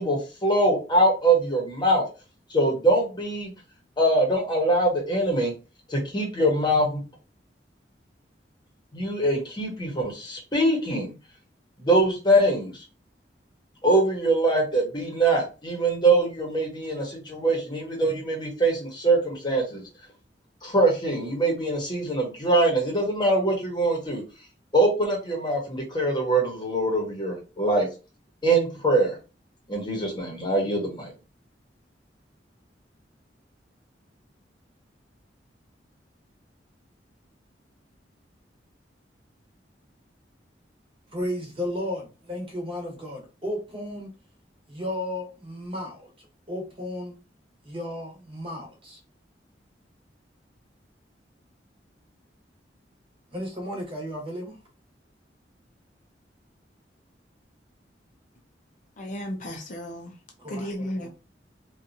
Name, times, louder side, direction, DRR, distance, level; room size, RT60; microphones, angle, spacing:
voice 1, 0.0-2.0 2.5-3.5 4.0-5.5 5.9-7.0 8.9-11.1 11.8-12.7 13.8-19.8 20.6-24.2 24.7-27.9 28.4-29.2 29.7-31.1, right 1 dB, 25° left, 0.9 m, -23 dB
voice 2, 41.1-44.1 44.7-46.1 46.5-47.1 47.6-49.0 53.3-54.6 60.4-61.1, left 1 dB, 30° right, 1.0 m, -34 dB
voice 3, 59.0-60.1 60.5-61.1, equal, 45° left, 0.5 m, -34 dB
2.7 x 2.3 x 2.6 m
head